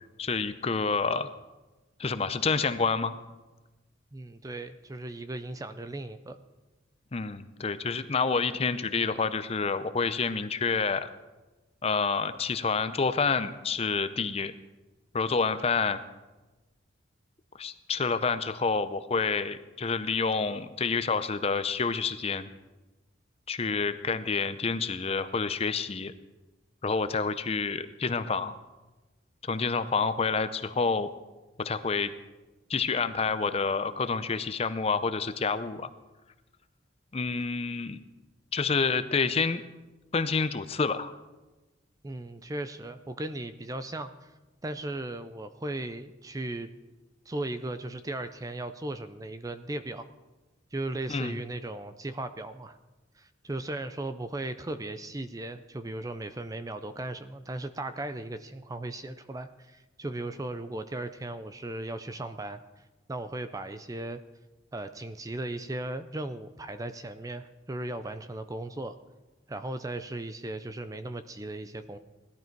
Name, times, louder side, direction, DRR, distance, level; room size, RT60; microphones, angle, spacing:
voice 1, 0.2-1.3 2.0-3.1 7.1-11.1 11.8-14.5 15.1-16.0 17.6-22.5 23.5-26.1 26.8-28.5 29.4-31.1 31.6-32.1 32.7-35.9 37.1-38.0 38.5-39.6 40.1-41.1 51.1-51.4, left 4 dB, 30° left, 12 dB, 0.5 m, -28 dB
voice 2, 4.1-6.4 42.0-44.3 44.6-46.7 47.3-50.1 50.7-52.8 53.2-62.6 63.1-64.2 64.7-69.0 69.5-72.0, right 2 dB, 20° right, 11 dB, 0.4 m, -37 dB
17.0 x 12.0 x 4.6 m, 1.1 s
head